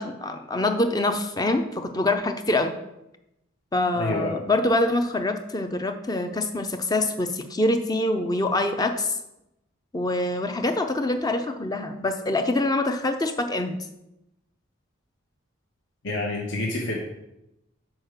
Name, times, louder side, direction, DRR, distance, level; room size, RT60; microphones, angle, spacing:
voice 1, 0.0-2.7 3.7-9.2 9.9-13.8, left 2 dB, 20° left, 6 dB, 0.5 m, -25 dB
voice 2, 3.9-4.3 16.0-17.0, left 2 dB, 60° left, -2 dB, 1.2 m, -28 dB
6.2 x 4.7 x 6.5 m, 0.89 s
head